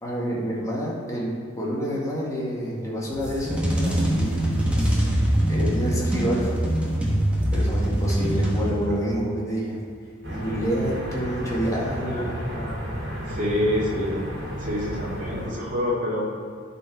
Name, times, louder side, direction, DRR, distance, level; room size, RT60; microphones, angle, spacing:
voice 1, 0.0-4.5 5.5-6.6 7.5-9.8 10.3-12.4, equal, 15° left, -5 dB, 1.8 m, -28 dB
sound 1, 3.1-9.1, right 1 dB, 5° right, 1.2 m, -23 dB
sound 2, 10.2-15.5, equal, 65° right, 2.3 m, -32 dB
voice 2, 12.1-12.7 13.3-14.2 14.6-16.2, left 1 dB, 45° right, -5 dB, 2.2 m, -27 dB
11.5 x 4.4 x 4.6 m, 2.3 s
head